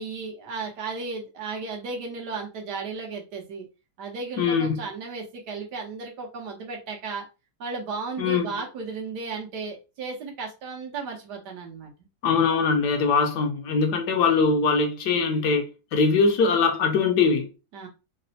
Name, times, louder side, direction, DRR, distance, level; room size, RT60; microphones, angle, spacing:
voice 1, 0.0-3.7 4.0-7.2 7.6-11.9 17.7-17.9, right 4 dB, 75° right, 1.5 m, -34 dB
voice 2, 4.4-4.8 8.2-8.6 12.2-17.5, left 4 dB, 75° left, 1.2 m, -22 dB
4.0 x 2.0 x 2.7 m
omnidirectional pair, 1.8 m